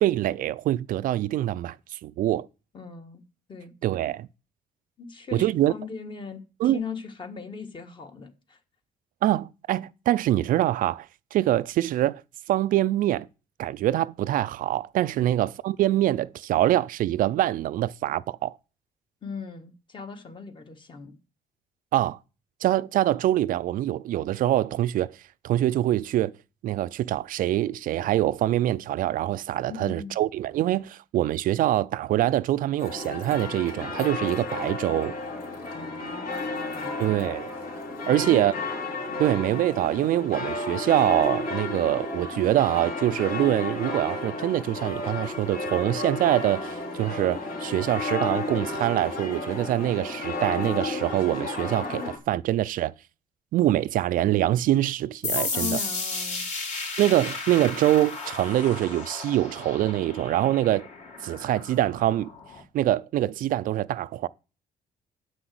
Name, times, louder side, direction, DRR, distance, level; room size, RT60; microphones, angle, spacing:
voice 1, 0.0-2.5 3.8-4.3 5.3-5.7 6.6-6.8 9.2-12.2 12.5-13.3 13.6-18.6 21.9-22.2 22.6-25.2 25.4-26.3 26.6-35.1 37.0-37.5 38.1-38.5 39.2-52.9 53.5-55.8 57.0-60.9 61.2-62.3 62.7-64.3, right 13 dB, 65° right, 0.4 m, -24 dB
voice 2, 2.7-3.7 5.0-8.6 15.1-15.3 19.2-21.2 29.7-30.2 35.7-37.2 38.0-38.7 39.0-39.3 55.3-56.5, left 5 dB, 35° left, 1.6 m, -39 dB
sound 1, 32.8-52.2, left 2 dB, 70° left, 3.9 m, -32 dB
sound 2, 55.2-62.6, left 4 dB, 50° left, 3.1 m, -34 dB
7.8 x 6.1 x 7.7 m
cardioid pair, 120°, 15 cm